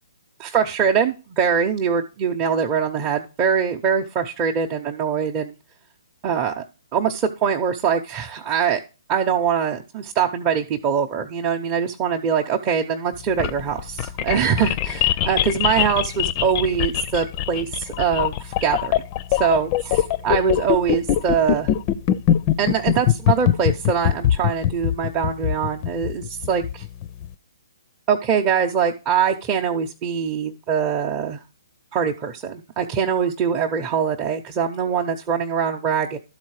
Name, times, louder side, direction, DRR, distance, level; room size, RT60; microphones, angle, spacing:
voice 1, 0.4-5.5 6.2-6.6 6.9-8.8 9.1-18.9 19.3-21.7 22.6-26.8 28.1-31.4 31.9-36.2, right 7 dB, 25° right, 0 dB, 0.7 m, -23 dB
sound 1, 13.2-27.3, left 11 dB, 30° left, 0.5 m, -22 dB
12.5 x 4.2 x 4.8 m, 0.32 s
hypercardioid pair, 135°, 2 cm